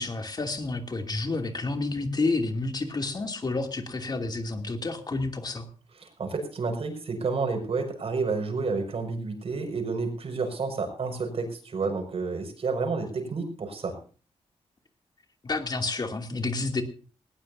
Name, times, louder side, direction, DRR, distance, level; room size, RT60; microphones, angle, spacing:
voice 1, 0.0-5.7 15.4-16.8, left 3 dB, 35° left, 5 dB, 2.6 m, -30 dB
voice 2, 6.0-14.0, right 4 dB, 60° right, 5 dB, 5.6 m, -30 dB
19.0 x 19.0 x 2.7 m, 0.39 s
wide cardioid pair, 105°, 11 cm